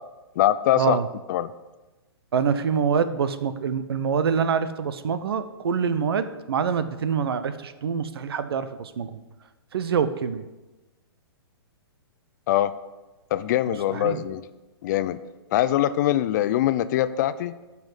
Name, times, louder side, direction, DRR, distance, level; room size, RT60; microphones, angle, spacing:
voice 1, 0.4-1.0 1.3-1.5 12.5-12.7 13.3-14.4 14.8-15.2 15.5-17.6, left 12 dB, 45° left, 14 dB, 0.6 m, -23 dB
voice 2, 2.3-9.2 9.7-10.4 13.9-14.2, right 6 dB, 65° right, 12 dB, 0.9 m, -25 dB
8.6 x 5.9 x 8.2 m, 1.1 s
hypercardioid pair, 130°, 13 cm